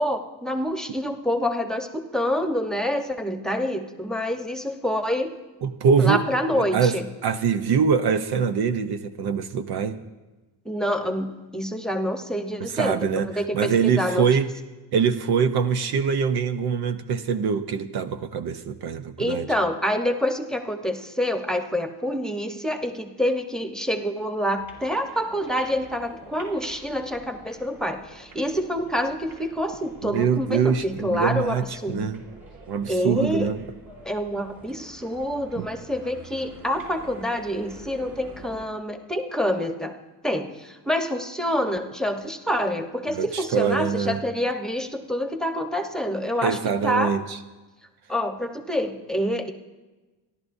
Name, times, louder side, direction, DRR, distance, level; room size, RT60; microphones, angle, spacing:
voice 1, 0.0-5.3 6.0-7.0 10.6-13.0 13.3-14.3 19.2-32.1 32.9-33.5 34.0-40.0 40.2-47.1 48.1-49.5, equal, ahead, 5 dB, 1.1 m, -27 dB
voice 2, 5.6-6.2 6.5-7.0 7.2-10.0 12.6-14.5 14.9-19.5 30.0-32.2 32.7-33.6 35.6-35.7 43.1-44.2 46.4-47.4, right 6 dB, 60° right, 9 dB, 0.9 m, -24 dB
sound 1, 24.6-38.7, right 2 dB, 45° right, 4.6 m, -47 dB
30.0 x 11.5 x 2.7 m, 1.2 s
cardioid pair, 100°, 43 cm